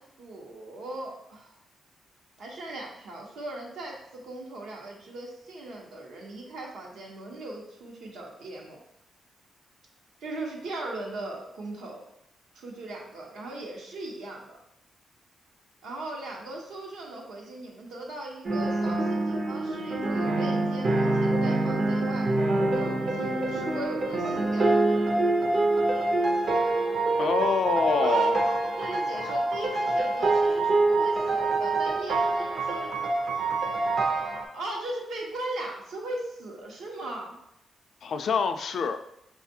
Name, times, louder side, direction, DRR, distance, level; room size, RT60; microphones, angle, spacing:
voice 1, 0.0-1.5 2.4-8.8 10.2-12.0 12.5-14.6 15.8-22.3 22.7-24.7 28.0-33.1 34.5-37.3, right 2 dB, 85° right, -1 dB, 0.9 m, -38 dB
sound 1, 18.4-34.5, right 2 dB, 60° right, 0.6 m, -25 dB
voice 2, 27.2-28.3 38.0-39.0, left 6 dB, 65° left, 9 dB, 0.3 m, -26 dB
5.3 x 2.4 x 2.7 m, 0.78 s
cardioid pair, 95°, 0 cm